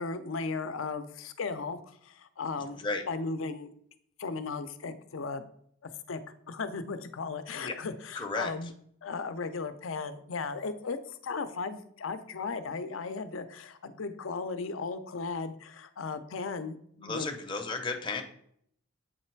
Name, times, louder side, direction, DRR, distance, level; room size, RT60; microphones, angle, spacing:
voice 1, 0.0-3.7 4.2-5.4 5.8-6.2 6.5-8.7 9.0-17.3, left 4 dB, 70° left, 11 dB, 0.6 m, -36 dB
voice 2, 8.1-8.5 17.0-18.2, left 3 dB, 25° left, 3 dB, 0.6 m, -33 dB
7.9 x 3.2 x 4.5 m, 0.67 s
head